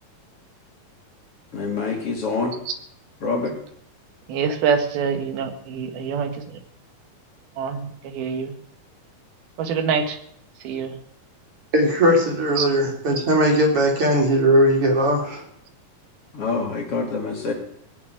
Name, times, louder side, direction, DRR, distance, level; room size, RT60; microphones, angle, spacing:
voice 1, 1.5-2.6 3.2-3.5 16.3-17.5, left 4 dB, 40° left, 1 dB, 3.1 m, -26 dB
voice 2, 4.3-6.3 7.6-8.5 9.6-10.2 10.6-10.9 12.6-12.7, right 6 dB, 85° right, 6 dB, 3.5 m, -25 dB
voice 3, 11.7-15.4, equal, 40° right, 1 dB, 4.0 m, -19 dB
18.5 x 7.4 x 9.4 m, 0.71 s
omnidirectional pair, 4.2 m